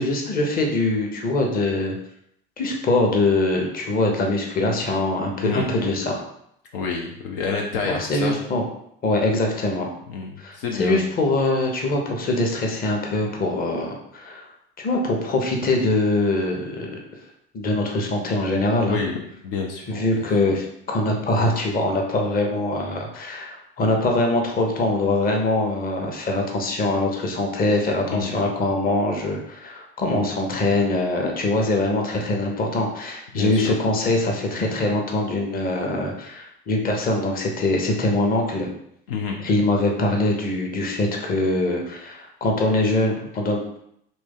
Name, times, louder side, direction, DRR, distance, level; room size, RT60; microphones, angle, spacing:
voice 1, 0.0-1.9 2.6-6.2 7.8-8.6 9.0-9.9 10.4-14.4 14.8-17.0 17.5-19.0 19.9-38.7 39.4-43.8, left 2 dB, 30° left, 1 dB, 0.9 m, -23 dB
voice 2, 6.7-8.4 10.1-11.0 18.9-20.1 28.1-28.3 30.1-30.3 33.3-33.8 39.1-39.4, left 5 dB, 70° left, 0 dB, 0.6 m, -28 dB
3.1 x 2.6 x 3.7 m, 0.71 s
figure-of-eight pair, 65°, 29 cm